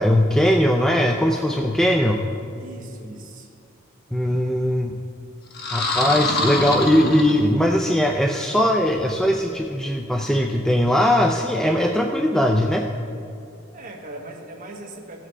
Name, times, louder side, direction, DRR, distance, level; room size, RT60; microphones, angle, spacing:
voice 1, 0.0-2.3 4.1-4.9 5.7-12.9, equal, 5° left, 2 dB, 0.4 m, -20 dB
voice 2, 2.5-3.5 13.5-15.3, right 2 dB, 45° right, 1 dB, 1.2 m, -39 dB
sound 1, 5.5-7.8, left 2 dB, 50° left, 1.1 m, -25 dB
16.5 x 7.4 x 3.3 m, 2.5 s
head